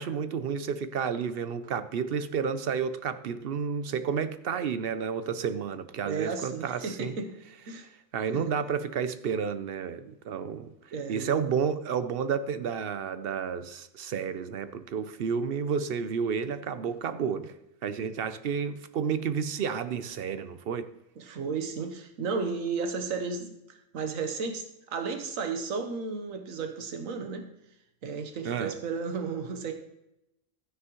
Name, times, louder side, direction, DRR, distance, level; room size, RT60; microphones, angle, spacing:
voice 1, 0.0-7.1 8.1-10.7 11.1-17.5 17.8-20.9 28.4-28.7, right 6 dB, 60° right, 0.7 m, -31 dB
voice 2, 6.0-7.3 7.7-7.9 8.3-8.4 10.9-11.3 21.2-27.5 28.0-29.7, right 5 dB, 90° right, 1.3 m, -33 dB
13.0 x 9.7 x 3.0 m
omnidirectional pair, 1.4 m